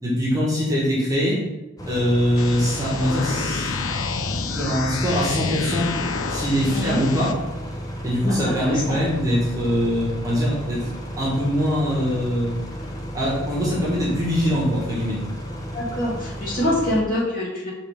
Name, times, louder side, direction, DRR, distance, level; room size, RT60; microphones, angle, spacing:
voice 1, 0.0-1.4 1.8-3.7 4.5-5.9 6.3-7.3 8.0-10.9 11.2-12.5 13.1-15.2, equal, 15° right, -5 dB, 1.5 m, -22 dB
sound 1, 1.8-17.0, equal, 15° left, 0.9 m, -33 dB
sound 2, 2.4-7.3, left 5 dB, 70° left, 0.5 m, -29 dB
voice 2, 6.7-7.0 8.3-9.0 15.7-17.7, left 1 dB, 40° left, -7 dB, 2.2 m, -25 dB
5.4 x 3.5 x 5.2 m, 0.99 s
head